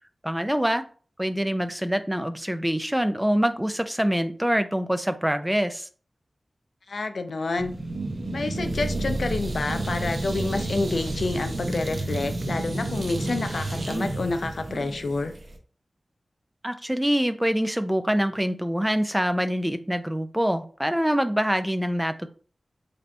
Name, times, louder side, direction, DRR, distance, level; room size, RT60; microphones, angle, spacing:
voice 1, 0.2-0.8 1.2-5.9 16.6-22.3, equal, 5° right, 0.4 m, -25 dB
voice 2, 6.9-7.7 8.3-15.3, left 3 dB, 75° left, 0.4 m, -28 dB
sound 1, 7.6-15.6, right 2 dB, 65° right, 0.7 m, -30 dB
4.0 x 3.3 x 2.6 m
wide cardioid pair, 85°, 0 cm